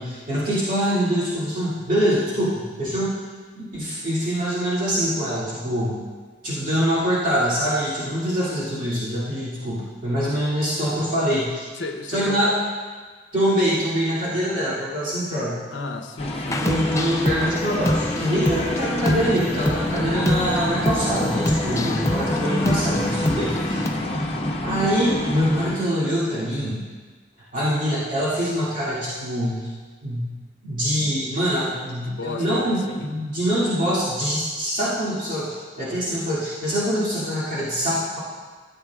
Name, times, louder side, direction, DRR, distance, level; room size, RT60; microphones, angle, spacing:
voice 1, 0.0-3.2 3.5-6.0 6.4-11.7 12.1-12.6 13.3-15.6 16.5-23.9 24.6-26.8 27.5-29.7 30.0-30.3 30.6-38.2, equal, 45° right, -10 dB, 2.3 m, -24 dB
voice 2, 11.8-12.4 14.3-14.4 15.7-16.9 23.6-23.8 30.8-31.1 32.1-33.1, left 3 dB, 85° left, 6 dB, 0.7 m, -34 dB
sound 1, 16.2-25.8, left 1 dB, 35° left, 0.9 m, -27 dB
sound 2, 16.5-23.9, left 1 dB, 15° left, 0.4 m, -26 dB
13.0 x 8.2 x 2.4 m, 1.4 s
head